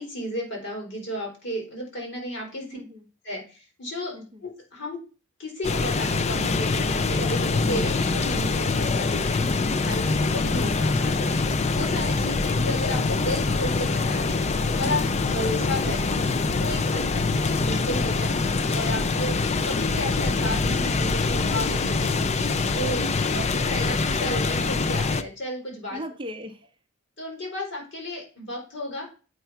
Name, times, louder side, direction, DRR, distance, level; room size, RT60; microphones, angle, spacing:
voice 1, 0.0-2.8 3.2-5.0 5.4-9.4 9.8-11.4 11.7-16.1 16.5-26.0 27.2-29.1, equal, 55° left, 0 dB, 3.9 m, -33 dB
voice 2, 2.5-3.0 4.1-4.4 14.8-15.2 19.1-19.2 25.9-26.7, equal, 25° right, 6 dB, 0.7 m, -39 dB
sound 1, 5.6-25.2, left 3 dB, 30° left, 0.4 m, -24 dB
7.9 x 4.6 x 5.6 m, 0.34 s
head